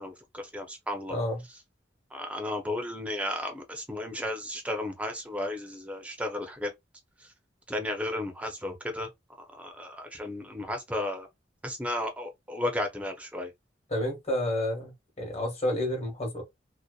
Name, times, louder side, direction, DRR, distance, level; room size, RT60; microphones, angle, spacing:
voice 1, 0.0-1.2 2.1-6.7 7.2-7.3 7.7-9.1 9.5-11.3 11.6-13.5, left 1 dB, 5° right, 0.5 m, -34 dB
voice 2, 1.1-1.4 13.9-16.4, left 1 dB, 35° left, 1.0 m, -30 dB
2.6 x 2.1 x 2.2 m
head